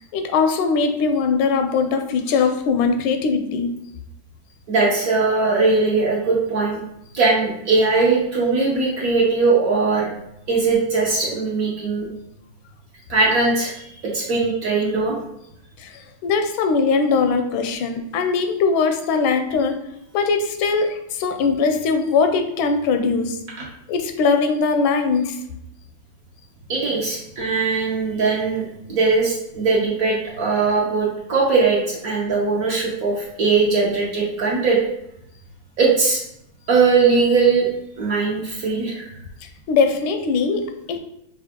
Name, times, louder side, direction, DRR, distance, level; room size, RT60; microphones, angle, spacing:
voice 1, 0.1-3.7 15.8-19.8 20.1-23.4 23.9-25.4 39.4-41.0, left 4 dB, 80° left, 6 dB, 1.4 m, -21 dB
voice 2, 4.7-6.8 7.1-10.1 10.5-12.1 13.1-15.1 26.7-34.8 35.8-36.2 36.7-37.7 38.0-39.0, right 4 dB, 55° right, -4 dB, 1.0 m, -20 dB
5.6 x 2.4 x 3.5 m, 0.80 s
omnidirectional pair, 2.2 m